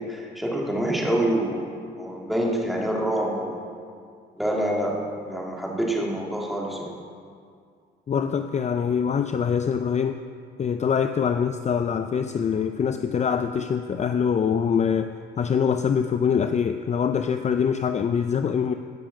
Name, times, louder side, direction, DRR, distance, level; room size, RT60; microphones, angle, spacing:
voice 1, 0.0-3.7 4.4-6.9, right 1 dB, ahead, -3 dB, 2.7 m, -26 dB
voice 2, 8.1-10.2 10.6-15.1 15.4-18.7, left 7 dB, 35° left, 8 dB, 0.5 m, -24 dB
16.0 x 7.0 x 6.0 m, 2.2 s
cardioid pair, 90°, 20 cm